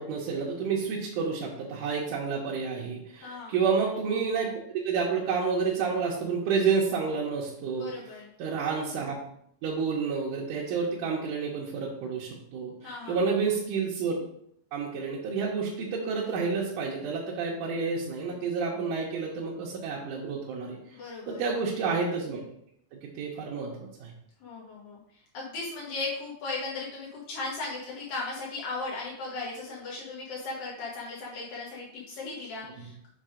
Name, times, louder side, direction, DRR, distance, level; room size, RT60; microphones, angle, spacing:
voice 1, 0.0-4.5 4.8-7.9 8.4-9.2 9.6-14.2 14.7-20.8 21.3-22.4 22.9-24.1 32.8-32.9, right 5 dB, 70° right, -4 dB, 2.4 m, -29 dB
voice 2, 3.2-3.5 7.7-8.3 12.8-13.2 20.9-21.4 24.4-25.0 25.3-33.1, left 3 dB, 75° left, -5 dB, 2.9 m, -37 dB
6.7 x 3.5 x 4.9 m, 0.71 s
omnidirectional pair, 4.0 m